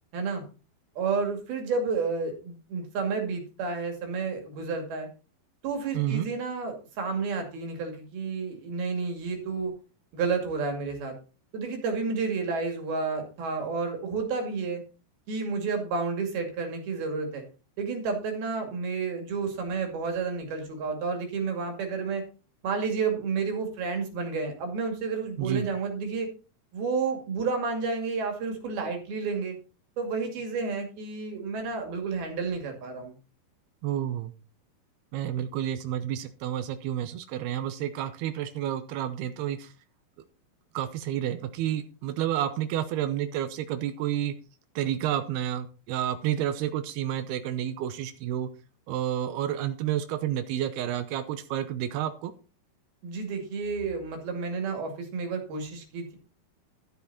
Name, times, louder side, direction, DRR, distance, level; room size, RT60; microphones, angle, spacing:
voice 1, 0.1-0.4 1.0-5.1 5.6-9.7 10.1-11.2 11.5-14.8 15.3-17.4 17.8-22.2 22.6-26.3 26.7-29.6 30.0-33.2 53.0-56.2, right 4 dB, 70° right, 4 dB, 4.3 m, -31 dB
voice 2, 5.9-6.3 25.4-25.7 33.8-34.3 35.1-39.7 40.7-44.3 44.8-48.5 48.9-52.3, right 11 dB, 90° right, 9 dB, 2.8 m, -30 dB
12.5 x 8.2 x 4.2 m, 0.34 s
omnidirectional pair, 4.5 m